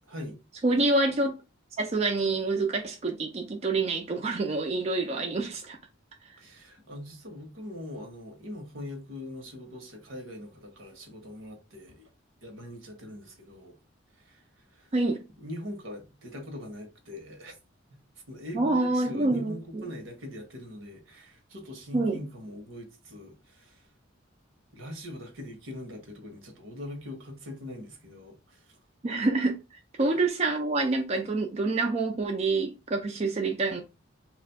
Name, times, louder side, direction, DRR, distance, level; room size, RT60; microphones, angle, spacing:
voice 1, 0.1-0.4 6.4-12.1 12.4-13.7 14.1-14.9 15.4-17.6 18.3-23.9 24.7-28.8, left 1 dB, 80° right, 1.1 m, -42 dB
voice 2, 0.6-1.4 1.8-5.8 14.9-15.2 18.5-19.8 21.9-22.2 29.0-29.6 30.0-33.8, right 3 dB, 35° right, 0.4 m, -27 dB
3.1 x 2.5 x 4.3 m
head